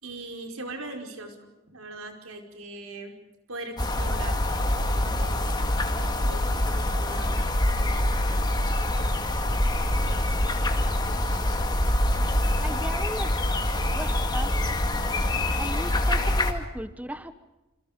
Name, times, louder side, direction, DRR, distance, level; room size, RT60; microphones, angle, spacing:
voice 1, 0.0-3.1 3.5-5.6 6.2-7.4, right 2 dB, 90° right, 5 dB, 5.0 m, -40 dB
sound 1, 3.8-16.5, left 1 dB, 20° left, 2.2 m, -25 dB
sound 2, 8.7-16.4, equal, 30° right, 5.1 m, -46 dB
voice 2, 12.6-13.3 13.9-14.6 15.5-17.3, right 1 dB, 5° right, 11 dB, 1.0 m, -36 dB
27.5 x 26.5 x 5.2 m, 1.0 s
head